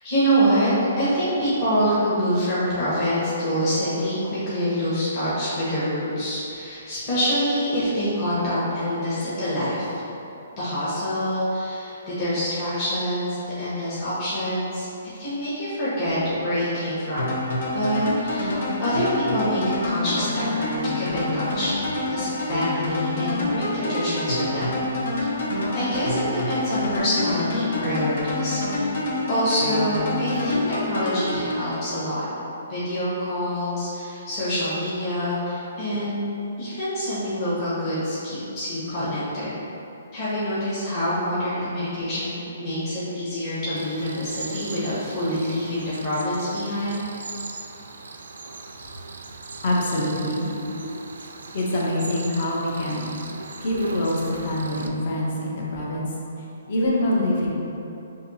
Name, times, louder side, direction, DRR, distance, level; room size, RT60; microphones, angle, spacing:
voice 1, 0.0-0.7 1.0-9.9 10.6-17.3 17.7-21.7 22.1-24.7 25.7-28.9 29.3-32.2 32.7-36.2 36.6-39.6 40.1-47.0 50.5-50.9, equal, 25° left, -12 dB, 1.2 m, -26 dB
sound 1, 17.2-32.2, left 2 dB, 70° left, 0.9 m, -27 dB
Cricket, 43.7-54.9, right 3 dB, 85° right, 0.4 m, -38 dB
voice 2, 49.6-50.4 51.5-53.0 53.6-56.1 56.7-57.5, left 1 dB, 40° left, -4 dB, 0.8 m, -25 dB
6.4 x 2.8 x 2.7 m, 2.9 s
hypercardioid pair, 165°, 0 cm